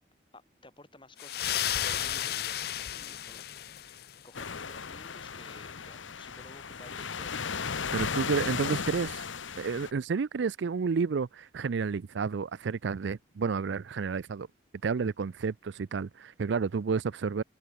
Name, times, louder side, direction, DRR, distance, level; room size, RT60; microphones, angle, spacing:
voice 1, 0.3-3.5 3.9-4.0 4.2-7.4, left 2 dB, 25° left, 7.3 m, -54 dB
sound 1, 1.2-4.2, left 11 dB, 55° left, 0.5 m, -33 dB
sound 2, 4.3-9.9, left 6 dB, 90° left, 1.0 m, -36 dB
voice 2, 7.9-9.3 9.5-14.5 14.8-17.4, right 5 dB, 75° right, 0.4 m, -30 dB
head